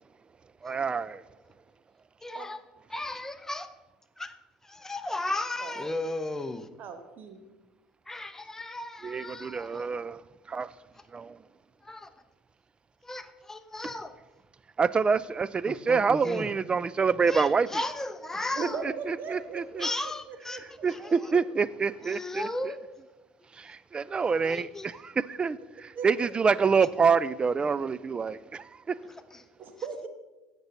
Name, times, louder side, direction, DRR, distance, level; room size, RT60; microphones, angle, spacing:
voice 1, 0.6-1.2 9.0-10.2 10.5-10.7 11.1-11.4 14.8-17.7 18.8-19.9 20.8-22.5 23.6-28.4, right 5 dB, 25° right, 0.4 m, -26 dB
voice 2, 2.2-2.6 2.9-3.7 4.2-4.3 4.6-6.7 8.1-9.9 11.8-12.1 13.0-14.1 15.7-16.5 17.3-18.8 19.8-20.6 20.9-21.3 22.0-22.8 24.4-24.9 29.0-29.4, left 2 dB, 10° left, 0.8 m, -35 dB
voice 3, 6.8-7.4 18.5-21.4 25.9-26.3 29.6-30.1, right 5 dB, 50° right, 1.5 m, -40 dB
16.0 x 5.4 x 3.9 m
figure-of-eight pair, 60°, 4 cm